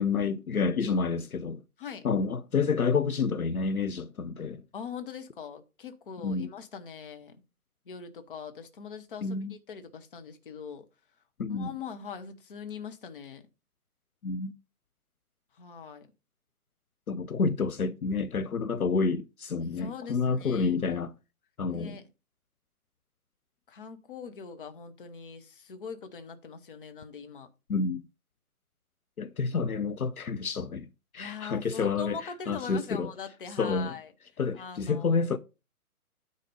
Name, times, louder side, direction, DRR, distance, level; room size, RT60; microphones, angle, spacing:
voice 1, 0.0-1.6 2.0-4.6 6.2-6.5 9.2-9.5 11.4-11.7 14.2-14.5 17.1-21.1 21.6-22.0 27.7-28.0 29.2-33.1 33.6-33.9 34.4-35.4, left 5 dB, 70° left, 0.7 m, -29 dB
voice 2, 4.7-7.4 7.9-10.9 11.5-13.4 15.5-16.1 19.7-21.0 21.7-22.1 23.7-27.5 31.2-34.1 34.5-35.2, left 6 dB, 35° left, 1.0 m, -42 dB
9.4 x 4.2 x 5.3 m
figure-of-eight pair, 135°, 45 cm